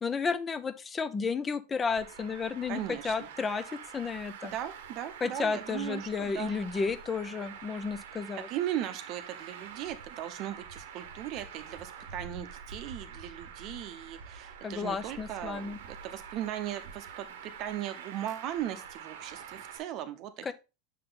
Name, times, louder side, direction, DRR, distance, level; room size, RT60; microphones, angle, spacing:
voice 1, 0.0-4.5 5.2-8.5 14.6-15.8 20.4-20.5, left 5 dB, 20° left, 0.5 m, -32 dB
Traffic noise roadway noise, 1.9-19.8, right 7 dB, 90° right, 1.0 m, -46 dB
voice 2, 2.7-3.3 4.5-6.5 8.5-20.5, right 11 dB, 45° right, 0.7 m, -38 dB
6.5 x 3.8 x 3.9 m
supercardioid pair, 140°, 0 cm